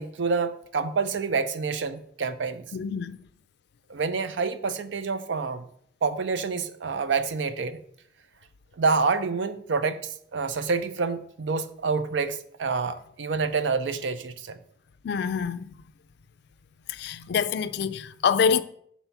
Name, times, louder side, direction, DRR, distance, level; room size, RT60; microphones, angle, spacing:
voice 1, 0.0-2.6 3.9-5.6 6.0-7.8 8.8-10.0 10.3-14.6, right 4 dB, 85° right, 0.5 m, -27 dB
voice 2, 2.7-3.2 15.0-15.7 16.9-18.6, left 6 dB, 65° left, 0.3 m, -26 dB
5.6 x 4.2 x 5.7 m
head